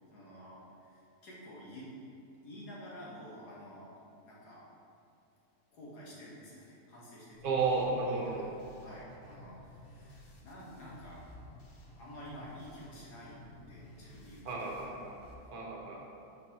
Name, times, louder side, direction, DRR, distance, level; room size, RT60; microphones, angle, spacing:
voice 1, 0.1-1.9 2.4-3.9 4.2-4.6 5.7-7.7 8.0-8.5 8.8-11.2 12.0-14.9 15.4-15.5, equal, 85° left, -6 dB, 2.0 m, -50 dB
sound 1, 7.3-15.3, left 1 dB, 45° left, 0.8 m, -54 dB
voice 2, 7.4-8.5 14.4-15.2 15.5-16.1, right 4 dB, 70° right, -2 dB, 1.5 m, -33 dB
11.0 x 4.1 x 2.9 m, 2.7 s
omnidirectional pair, 1.7 m